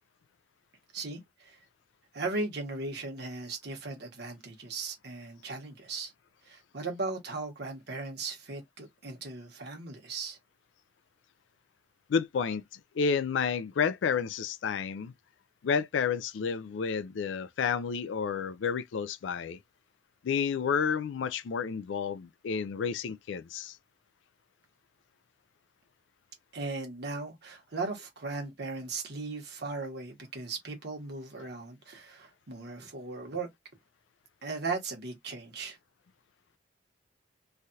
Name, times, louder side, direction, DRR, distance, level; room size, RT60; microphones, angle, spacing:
voice 1, 0.9-1.6 2.1-6.1 6.4-10.4 26.5-33.5 34.4-35.8, right 3 dB, 60° right, 1.2 m, -37 dB
voice 2, 12.1-12.6 12.9-15.1 15.6-19.6 20.2-23.8, left 6 dB, 75° left, 0.4 m, -30 dB
3.2 x 2.3 x 2.7 m
head